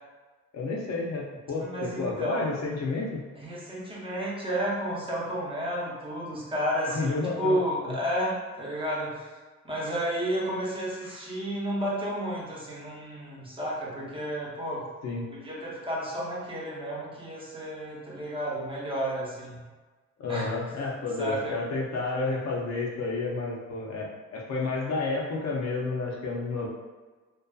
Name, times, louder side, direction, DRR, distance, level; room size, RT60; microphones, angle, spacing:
voice 1, 0.5-3.2 6.9-7.6 7.9-8.0 15.0-15.2 20.2-26.7, left 3 dB, 60° left, -2 dB, 0.7 m, -31 dB
voice 2, 1.6-2.5 3.4-9.3 9.6-14.9 15.3-19.6 20.3-20.6 21.2-21.6, equal, 15° right, -6 dB, 0.9 m, -31 dB
2.6 x 2.4 x 2.3 m, 1.3 s
cardioid pair, 90°, 30 cm